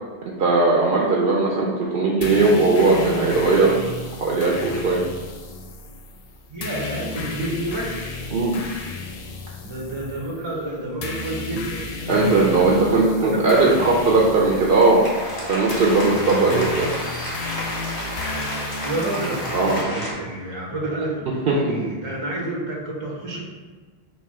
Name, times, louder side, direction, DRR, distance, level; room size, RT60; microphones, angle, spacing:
voice 1, 0.4-3.8 4.2-5.0 8.3-8.6 12.1-15.0 15.5-16.9 19.5-19.8 21.5-21.7, right 3 dB, 65° right, -3 dB, 0.8 m, -18 dB
sound 1, 2.2-19.8, left 3 dB, 55° left, 0.4 m, -33 dB
voice 2, 6.5-8.2 9.6-14.2 18.8-23.4, right 2 dB, 30° right, -3 dB, 0.7 m, -30 dB
sound 2, 14.4-20.1, left 1 dB, 25° left, 1.0 m, -31 dB
4.2 x 2.7 x 4.7 m, 1.4 s
omnidirectional pair, 1.0 m